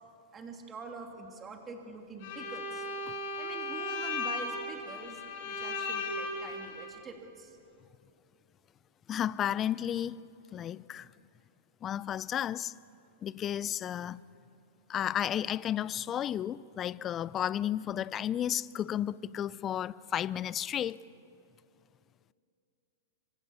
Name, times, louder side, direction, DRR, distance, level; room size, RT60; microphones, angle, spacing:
voice 1, 0.3-2.9 3.4-7.6, right 3 dB, 20° right, 2.9 m, -45 dB
Bowed string instrument, 2.2-6.9, left 2 dB, 55° left, 6.9 m, -36 dB
voice 2, 9.1-11.1 11.8-12.7 13.2-14.2 14.9-21.0, left 10 dB, 25° left, 0.5 m, -33 dB
26.5 x 25.0 x 7.0 m
hypercardioid pair, 135°, 0 cm